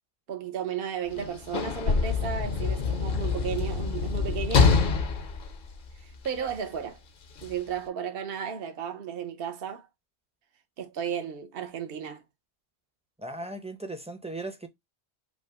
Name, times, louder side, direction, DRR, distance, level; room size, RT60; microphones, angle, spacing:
voice 1, 0.3-4.8 6.0-7.0 7.4-9.9 10.8-12.2, right 8 dB, 60° right, 1.0 m, -34 dB
Sliding door / Slam, 1.1-6.5 7.4-7.5, left 5 dB, 55° left, 0.8 m, -26 dB
voice 2, 13.2-14.7, right 2 dB, 5° right, 0.6 m, -37 dB
5.3 x 2.1 x 4.7 m
omnidirectional pair, 1.1 m